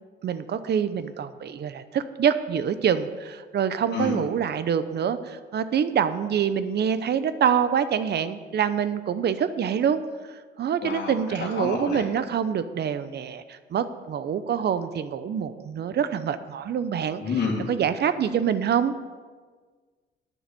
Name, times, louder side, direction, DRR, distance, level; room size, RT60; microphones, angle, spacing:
voice 1, 0.2-10.0 10.6-17.2 17.7-18.9, right 8 dB, 55° right, 13 dB, 0.7 m, -25 dB
voice 2, 3.9-4.2 10.8-12.1 17.2-17.7, left 5 dB, 55° left, -5 dB, 2.1 m, -29 dB
10.0 x 6.5 x 7.7 m, 1.5 s
cardioid pair, 90°, 20 cm